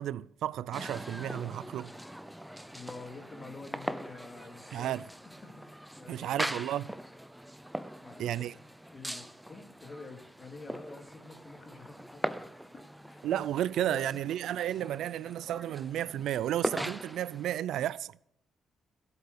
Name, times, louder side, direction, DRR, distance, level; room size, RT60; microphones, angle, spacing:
voice 1, 0.0-1.9 4.7-5.0 6.1-6.9 8.2-8.5 13.2-18.2, right 12 dB, 75° right, 0.4 m, -33 dB
sound 1, 0.7-17.5, equal, 5° right, 0.6 m, -41 dB
voice 2, 2.7-5.0 5.4-6.7 7.9-8.3 8.9-12.7 13.0-13.4 13.8-14.2, left 3 dB, 25° left, 2.4 m, -48 dB
17.5 x 8.2 x 6.8 m
cardioid pair, 145°, 0 cm